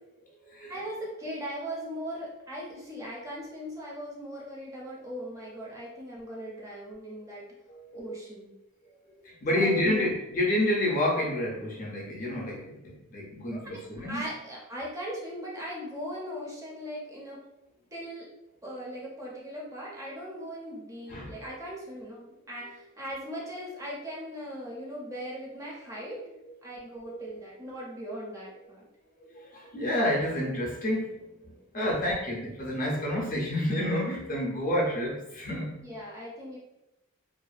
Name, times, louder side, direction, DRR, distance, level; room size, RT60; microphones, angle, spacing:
voice 1, 0.7-7.5 7.9-8.5 9.5-10.1 13.5-17.4 17.9-18.3 18.6-26.2 26.6-28.9 31.8-31.9 35.7-36.6, equal, 15° right, -4 dB, 0.5 m, -39 dB
voice 2, 7.7-8.1 9.2-14.3 21.1-21.3 27.1-27.3 29.3-35.7, left 1 dB, 40° left, -2 dB, 0.5 m, -29 dB
2.4 x 2.1 x 2.4 m, 0.92 s
head